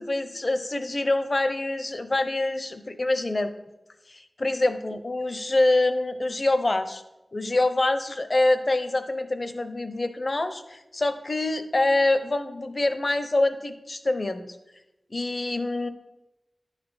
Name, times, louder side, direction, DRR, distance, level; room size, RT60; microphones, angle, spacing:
voice 1, 0.0-3.5 4.1-7.0 7.3-14.5 15.1-15.9, left 2 dB, 45° left, 9 dB, 0.7 m, -25 dB
10.5 x 4.1 x 4.8 m, 0.96 s
wide cardioid pair, 75°, 0 cm